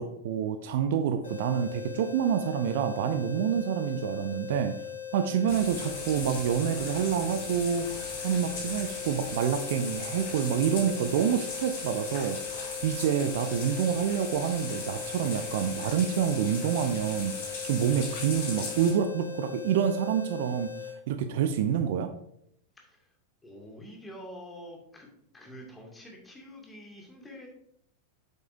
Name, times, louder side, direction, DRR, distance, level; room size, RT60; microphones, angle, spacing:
voice 1, 0.0-4.8 5.1-20.7 21.1-22.1, right 8 dB, 55° right, 9 dB, 0.5 m, -28 dB
sound 1, 1.2-21.0, left 8 dB, 70° left, 2.4 m, -40 dB
sound 2, 5.5-18.9, left 4 dB, 50° left, 3.5 m, -38 dB
voice 2, 22.8-23.1 23.4-25.1 25.3-27.5, equal, 10° left, 0 dB, 2.1 m, -46 dB
8.3 x 8.0 x 2.6 m, 0.72 s
figure-of-eight pair, 90°, 0 cm